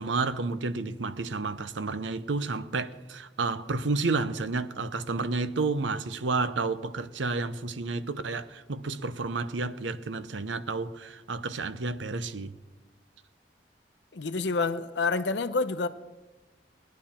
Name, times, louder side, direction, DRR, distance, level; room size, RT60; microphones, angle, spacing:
voice 1, 0.0-12.6, right 3 dB, 85° right, 0.7 m, -31 dB
voice 2, 14.1-15.9, left 3 dB, 70° left, 0.7 m, -28 dB
20.5 x 10.5 x 4.4 m
head